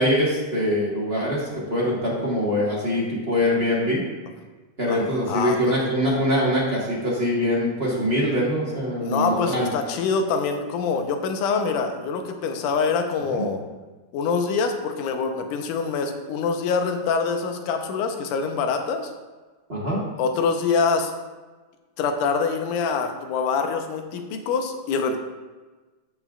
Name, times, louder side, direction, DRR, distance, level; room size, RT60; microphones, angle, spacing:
voice 1, 0.0-4.0 4.8-9.7 13.4-13.5 19.7-20.0, equal, 40° right, -6 dB, 0.9 m, -23 dB
voice 2, 4.9-5.9 9.0-13.6 14.1-19.1 20.2-21.1 22.0-25.2, left 5 dB, 80° left, 5 dB, 2.3 m, -25 dB
14.0 x 5.4 x 2.4 m, 1.3 s
omnidirectional pair, 3.6 m